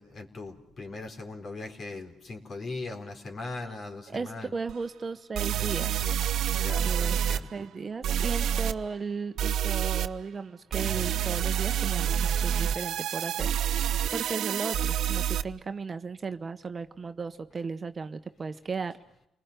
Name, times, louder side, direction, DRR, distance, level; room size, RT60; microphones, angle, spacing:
voice 1, 0.0-4.5 6.5-7.5, left 3 dB, 45° left, 6 dB, 4.2 m, -39 dB
voice 2, 4.1-6.2 6.8-7.2 7.5-19.0, right 5 dB, 35° right, 10 dB, 1.1 m, -36 dB
sound 1, 4.7-4.8 5.3-7.4 8.0-8.7 9.4-10.1 10.7-15.4, right 9 dB, 75° right, 0.8 m, -28 dB
30.0 x 20.0 x 6.7 m, 0.81 s
cardioid pair, 90°, 0 cm